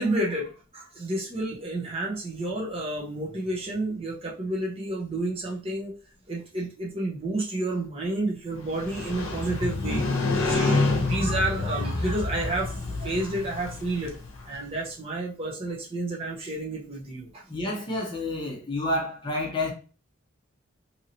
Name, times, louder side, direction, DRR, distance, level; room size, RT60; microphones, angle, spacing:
voice 1, 0.0-5.9 6.3-14.2 14.4-17.4, right 2 dB, 30° right, 0.7 m, -30 dB
Motorcycle, 8.6-14.6, left 3 dB, 80° left, 0.7 m, -28 dB
voice 2, 17.5-19.7, left 1 dB, 25° left, 0.7 m, -29 dB
2.8 x 2.7 x 2.8 m
head